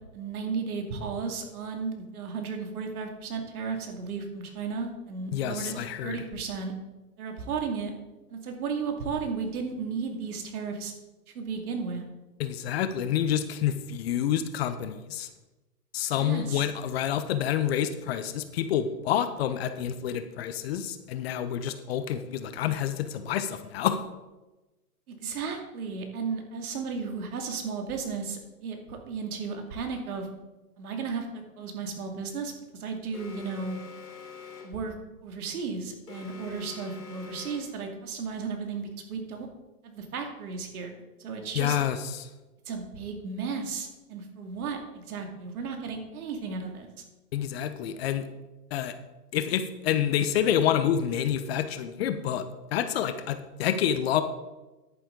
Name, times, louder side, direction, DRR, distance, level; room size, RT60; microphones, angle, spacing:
voice 1, 0.1-5.7 6.0-6.7 7.2-7.9 8.3-10.9 11.3-12.0 16.2-16.6 25.1-30.3 30.8-33.8 34.6-34.9 35.2-39.5 39.8-40.9 41.2-41.8 42.7-46.9, right 5 dB, 65° right, 3 dB, 2.4 m, -34 dB
voice 2, 5.3-6.2 12.4-15.3 15.9-24.0 41.6-42.3 47.3-48.2 48.7-48.9 49.3-52.4 52.7-54.2, left 10 dB, 40° left, 11 dB, 0.8 m, -28 dB
Alarm, 33.1-34.9 36.1-37.9, left 6 dB, 85° left, 3.1 m, -44 dB
10.5 x 9.3 x 3.8 m, 1.1 s
hypercardioid pair, 135°, 47 cm